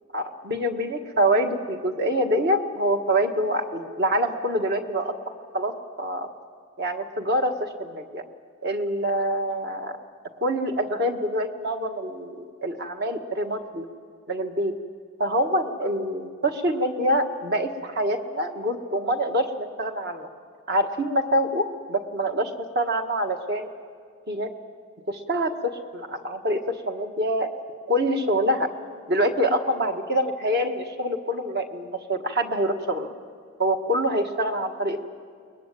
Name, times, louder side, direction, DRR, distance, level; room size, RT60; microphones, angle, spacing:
voice 1, 0.1-6.3 6.8-8.2 8.6-10.0 10.4-13.9 14.3-14.7 15.2-20.3 20.7-23.7 24.3-24.5 25.1-27.5 27.9-28.7 29.1-33.1 33.6-35.0, equal, 50° right, 4 dB, 1.7 m, -25 dB
22.5 x 21.0 x 9.3 m, 2.1 s
head